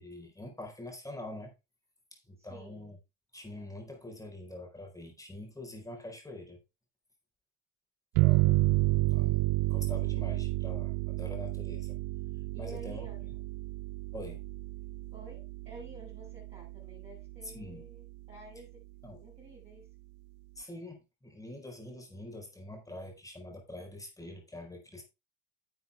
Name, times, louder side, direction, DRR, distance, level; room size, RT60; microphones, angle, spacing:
voice 1, 0.0-1.5 2.1-3.0 3.3-6.6 8.2-8.5 9.1-9.4 9.7-12.0 12.6-13.0 14.1-14.4 17.4-17.8 19.0-19.2 20.5-25.0, left 1 dB, 10° left, 2 dB, 4.5 m, -45 dB
voice 2, 2.4-3.0 12.5-13.4 15.1-18.8 19.2-19.9, right 2 dB, 20° right, -5 dB, 6.0 m, -51 dB
sound 1, 8.2-17.4, right 22 dB, 85° right, 0.5 m, -30 dB
10.5 x 7.8 x 3.5 m, 0.25 s
cardioid pair, 115°, 32 cm